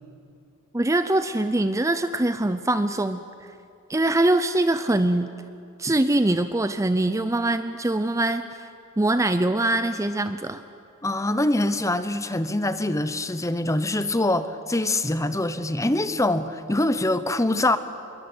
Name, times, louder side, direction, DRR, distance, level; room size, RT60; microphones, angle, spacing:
voice 1, 0.7-3.2 3.9-5.3 5.8-8.7 9.0-10.6, right 1 dB, 15° right, 10 dB, 0.6 m, -23 dB
voice 2, 11.0-17.8, left 1 dB, 15° left, 12 dB, 0.9 m, -24 dB
26.5 x 22.5 x 8.0 m, 2.6 s
head